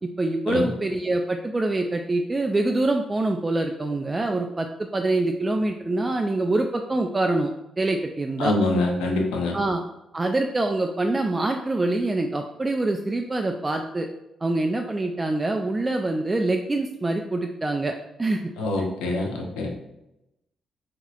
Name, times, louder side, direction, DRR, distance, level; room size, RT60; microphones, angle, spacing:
voice 1, 0.0-4.7 4.9-7.5 7.8-8.5 9.5-9.8 10.1-14.1 14.4-18.4 18.8-18.9, right 2 dB, 25° right, 3 dB, 0.3 m, -25 dB
voice 2, 8.4-9.6 18.6-19.7, left 2 dB, 90° left, 1 dB, 0.6 m, -24 dB
3.9 x 2.8 x 2.4 m, 0.88 s
supercardioid pair, 55°, 0 cm